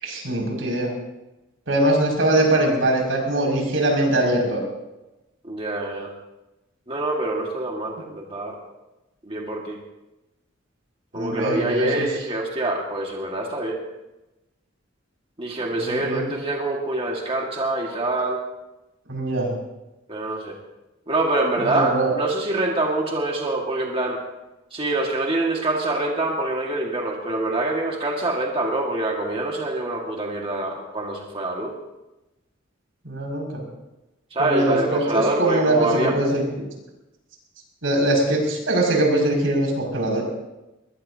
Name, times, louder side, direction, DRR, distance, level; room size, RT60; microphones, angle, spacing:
voice 1, 0.0-0.9 1.7-4.6 11.1-12.1 15.7-16.3 19.1-19.5 21.6-22.1 33.0-33.7 34.4-36.6 37.8-40.2, right 1 dB, 85° right, -1 dB, 6.2 m, -22 dB
voice 2, 5.4-6.1 6.9-8.6 9.3-9.8 11.1-13.8 15.4-18.4 20.1-20.6 21.1-24.2 24.7-31.7 34.3-36.2, right 2 dB, 30° right, -1 dB, 1.9 m, -25 dB
22.0 x 21.0 x 2.8 m, 1.0 s
head